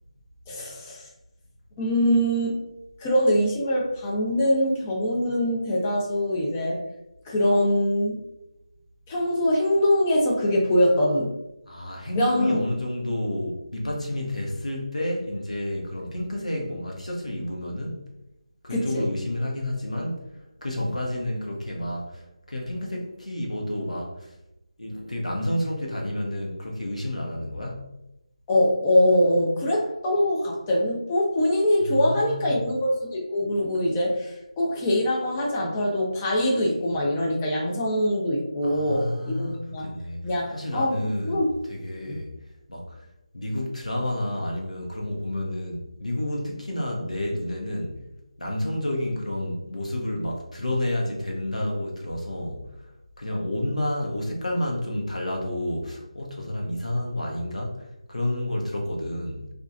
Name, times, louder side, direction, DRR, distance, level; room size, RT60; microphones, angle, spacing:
voice 1, 0.5-1.1 1.8-2.6 3.0-6.8 7.3-8.2 9.1-11.3 12.1-12.7 18.7-19.0 28.5-39.9 40.2-41.4 42.0-42.2, left 1 dB, 15° left, -2 dB, 0.4 m, -23 dB
voice 2, 11.7-18.0 18.6-20.2 20.6-22.2 22.5-24.3 24.8-27.9 31.8-32.7 38.6-40.2 40.5-41.4 41.7-42.3 42.7-43.0 43.3-48.0 48.4-52.7 53.2-59.5, left 1 dB, 90° left, -1 dB, 0.8 m, -30 dB
2.9 x 2.3 x 2.3 m, 0.90 s
figure-of-eight pair, 160°, 4 cm